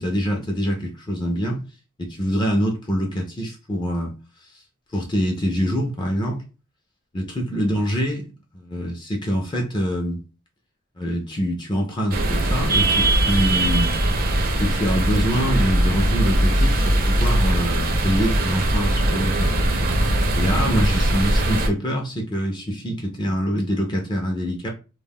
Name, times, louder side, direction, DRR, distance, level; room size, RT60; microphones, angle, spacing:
voice 1, 0.0-1.6 2.0-4.1 4.9-6.4 7.1-8.3 8.5-10.2 11.0-14.0 14.6-19.6 20.3-24.7, equal, 20° left, 0.4 m, -25 dB
sound 1, 12.1-21.7, right 1 dB, 45° right, 0.4 m, -20 dB
2.2 x 2.1 x 3.4 m
head